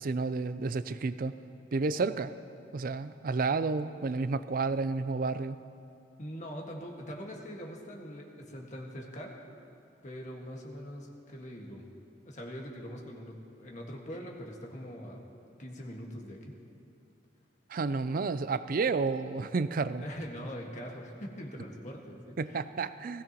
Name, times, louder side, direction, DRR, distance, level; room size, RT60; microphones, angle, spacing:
voice 1, 0.0-1.3 1.7-2.3 2.7-5.6 17.7-20.0 22.4-23.2, right 4 dB, 50° right, 14 dB, 0.4 m, -31 dB
voice 2, 6.2-9.4 10.0-11.8 12.2-15.2 15.6-16.5 20.0-22.6, equal, 40° left, -1 dB, 1.6 m, -42 dB
19.0 x 16.5 x 3.0 m, 2.7 s
head